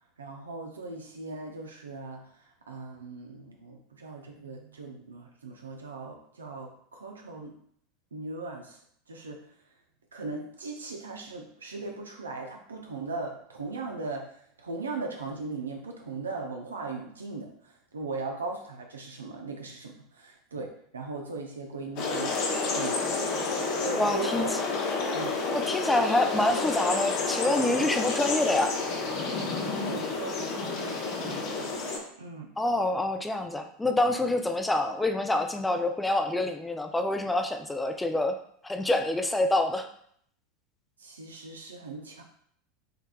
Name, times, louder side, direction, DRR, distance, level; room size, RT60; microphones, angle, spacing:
voice 1, 0.2-2.3 2.7-7.5 8.1-8.8 9.1-9.4 10.1-22.4 22.7-23.0 23.8-24.5 25.1-25.4 29.8-31.8 32.2-32.5 41.0-42.2, right 3 dB, 80° right, 2 dB, 0.6 m, -38 dB
sound 1, 22.0-32.0, left 3 dB, 50° left, 1.0 m, -30 dB
voice 2, 23.9-24.6 25.5-28.7 32.6-38.4 38.6-39.9, left 2 dB, 10° left, 6 dB, 0.5 m, -26 dB
5.7 x 3.4 x 2.3 m, 0.65 s
figure-of-eight pair, 80°, 0 cm